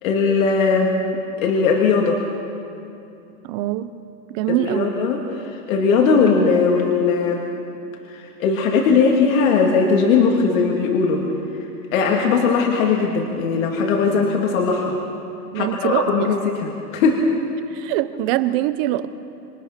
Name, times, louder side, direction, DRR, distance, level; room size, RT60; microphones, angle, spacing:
voice 1, 0.0-0.9 1.4-2.2 4.6-7.4 8.1-11.2 11.9-14.9 15.5-16.4 16.9-17.3, left 5 dB, 65° left, 0 dB, 2.5 m, -19 dB
voice 2, 3.4-3.9 4.3-5.0 15.5-16.3 17.7-19.1, right 14 dB, 40° right, 13 dB, 0.9 m, -23 dB
27.0 x 20.5 x 6.0 m, 2.8 s
supercardioid pair, 155°, 44 cm